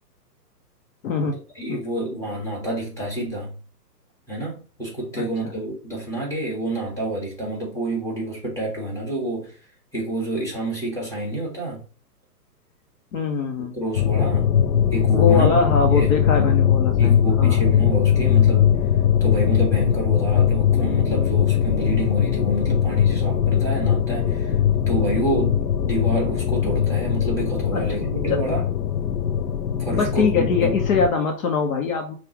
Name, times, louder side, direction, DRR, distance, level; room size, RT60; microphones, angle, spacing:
voice 1, 1.0-1.4 1.7-1.8 5.1-5.5 13.1-13.8 15.1-17.6 27.7-28.0 28.3-28.6 29.9-32.2, left 5 dB, 55° left, 1.0 m, -23 dB
voice 2, 1.6-3.5 4.3-9.5 9.9-11.8 13.7-14.6 14.9-15.5 15.9-16.5 17.0-18.8 19.2-24.5 24.9-28.6 29.8-30.8, right 1 dB, 5° left, 1.7 m, -28 dB
sound 1, 14.0-31.1, left 9 dB, 85° left, 0.7 m, -20 dB
5.7 x 2.5 x 3.0 m
hypercardioid pair, 130°, 50 cm